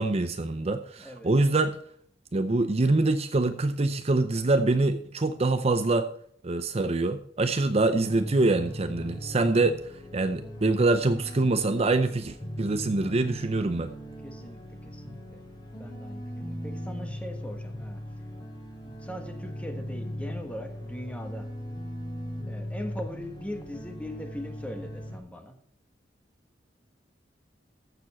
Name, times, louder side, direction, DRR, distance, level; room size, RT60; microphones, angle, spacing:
voice 1, 0.0-1.8 2.3-6.1 6.4-9.8 10.1-13.9, right 2 dB, 35° right, 9 dB, 0.6 m, -25 dB
voice 2, 1.0-1.3 14.2-15.4 15.8-18.0 18.8-21.5 22.4-25.6, equal, 10° left, 5 dB, 1.4 m, -40 dB
sound 1, 7.9-25.2, equal, 25° left, 3.8 m, -39 dB
14.5 x 7.0 x 4.3 m, 0.63 s
head